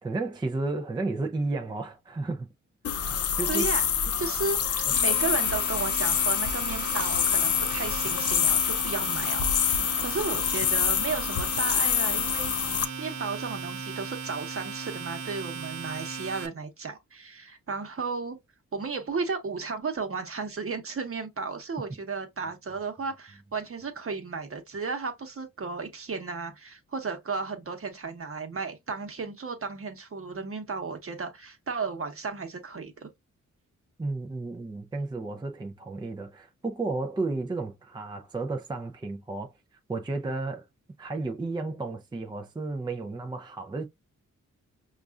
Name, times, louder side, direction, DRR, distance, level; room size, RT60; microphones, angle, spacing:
voice 1, 0.0-2.5 2.8-3.7 4.8-4.9 34.0-39.5 39.9-40.7 41.0-43.8, right 3 dB, 15° right, 0.4 m, -33 dB
sound 1, 2.8-12.9, left 8 dB, 55° left, 0.5 m, -26 dB
voice 2, 3.5-3.9 4.2-12.5 13.0-18.4 18.7-33.1, right 4 dB, 45° right, 1.0 m, -34 dB
Domestic sounds home sounds, 4.6-16.5, right 5 dB, 70° right, 1.0 m, -38 dB
5.2 x 2.4 x 2.3 m
cardioid pair, 80°, 30 cm